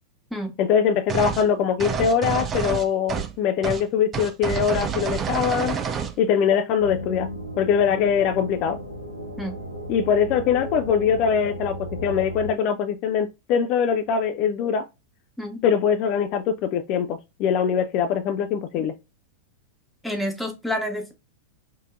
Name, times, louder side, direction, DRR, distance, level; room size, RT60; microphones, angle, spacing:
voice 1, 0.6-5.8 6.2-7.3 7.6-8.8 9.9-11.8 12.0-14.8 15.6-18.9, left 7 dB, 40° left, 0.4 m, -22 dB
sound 1, 1.1-1.5 1.8-3.4 3.6-3.8 4.1-6.2, right 7 dB, 25° right, 0.5 m, -28 dB
sound 2, 6.8-12.5, equal, 80° left, 0.9 m, -35 dB
voice 2, 20.0-21.1, equal, ahead, 1.2 m, -29 dB
5.2 x 2.7 x 2.5 m
figure-of-eight pair, 90°, 0 cm